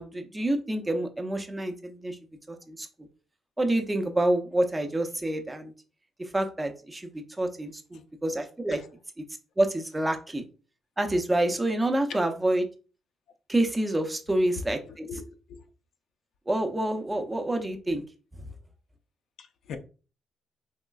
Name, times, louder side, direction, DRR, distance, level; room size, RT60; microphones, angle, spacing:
voice 1, 0.0-2.2 2.5-2.9 3.6-5.7 6.2-8.8 9.6-10.4 11.0-12.7 13.5-15.1 16.5-18.0, right 1 dB, 15° right, 0.6 m, -27 dB
voice 2, 14.8-15.6 19.4-19.8, left 5 dB, 75° left, 0.5 m, -41 dB
3.6 x 3.0 x 2.3 m
cardioid pair, 90°, 0 cm